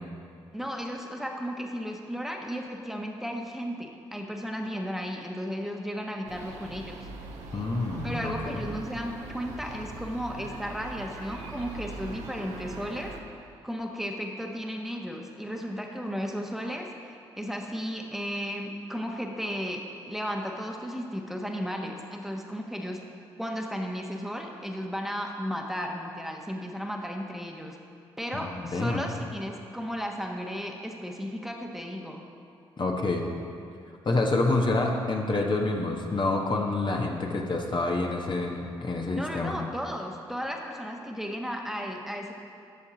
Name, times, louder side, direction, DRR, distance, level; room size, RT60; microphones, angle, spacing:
voice 1, 0.5-7.0 8.0-13.1 13.6-23.0 23.4-27.8 28.2-32.2 39.1-42.3, equal, ahead, 1 dB, 1.2 m, -34 dB
sound 1, 6.3-13.2, right 3 dB, 65° right, 1.0 m, -42 dB
voice 2, 7.5-8.6 28.3-29.1 32.8-33.3 34.0-39.6, left 2 dB, 35° left, 1 dB, 1.2 m, -27 dB
12.0 x 7.1 x 4.0 m, 2.4 s
hypercardioid pair, 40°, 13 cm